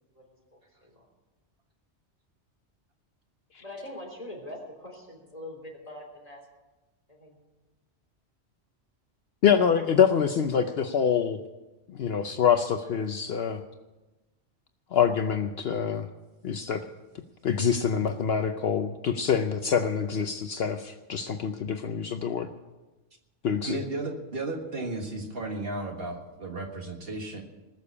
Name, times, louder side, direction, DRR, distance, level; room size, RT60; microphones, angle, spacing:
voice 1, 0.5-1.1 3.6-6.4 7.1-7.3, left 1 dB, 35° left, 0 dB, 3.5 m, -43 dB
voice 2, 9.4-11.4 11.9-13.6 14.9-16.1 16.4-16.9 17.4-22.5 23.4-23.8, left 7 dB, 65° left, 7 dB, 0.9 m, -25 dB
voice 3, 23.6-27.4, right 2 dB, 55° right, 3 dB, 1.8 m, -34 dB
20.0 x 6.9 x 8.4 m, 1.1 s
omnidirectional pair, 1.2 m